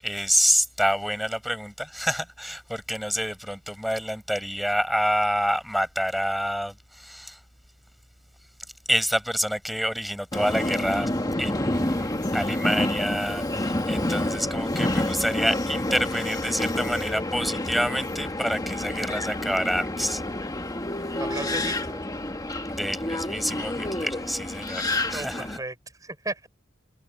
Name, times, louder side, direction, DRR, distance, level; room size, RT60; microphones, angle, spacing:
voice 1, 0.0-7.4 8.9-11.1 11.4-20.2 22.7-25.6, equal, ahead, 7.6 m, -27 dB
Subway metro underground, 10.3-25.6, left 1 dB, 20° left, 1.5 m, -28 dB
voice 2, 21.2-22.0 25.1-25.7 26.0-26.5, right 2 dB, 20° right, 5.0 m, -35 dB
head